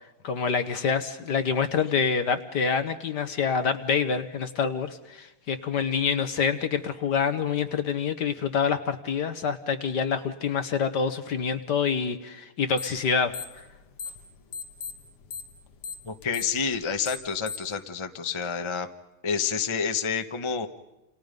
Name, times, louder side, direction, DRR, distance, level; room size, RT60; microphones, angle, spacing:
voice 1, 0.2-13.6, left 6 dB, 55° left, 9 dB, 1.6 m, -26 dB
sound 1, 12.8-13.0 13.3-14.2 14.5-17.8, left 6 dB, 90° left, 2.6 m, -37 dB
voice 2, 16.0-18.9 19.2-20.7, left 6 dB, 20° left, 7 dB, 0.9 m, -29 dB
29.0 x 28.5 x 5.3 m, 0.99 s
omnidirectional pair, 2.4 m